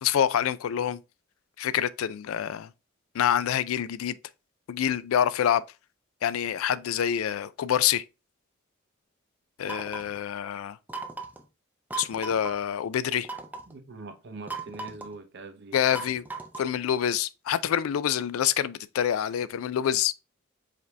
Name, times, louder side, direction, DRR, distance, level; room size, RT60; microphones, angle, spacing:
voice 1, 0.0-1.0 1.6-2.7 3.1-4.2 4.7-5.6 6.2-8.0 9.6-10.8 12.0-13.3 15.7-16.2 16.6-20.1, left 9 dB, 85° left, 0.3 m, -26 dB
sound 1, 9.7-10.2 10.9-11.4 11.9-12.5 13.2-13.7 14.5-15.1 15.9-16.8, right 3 dB, 10° right, 0.4 m, -37 dB
voice 2, 13.7-15.8, right 3 dB, 60° right, 0.7 m, -43 dB
5.0 x 2.7 x 3.3 m
head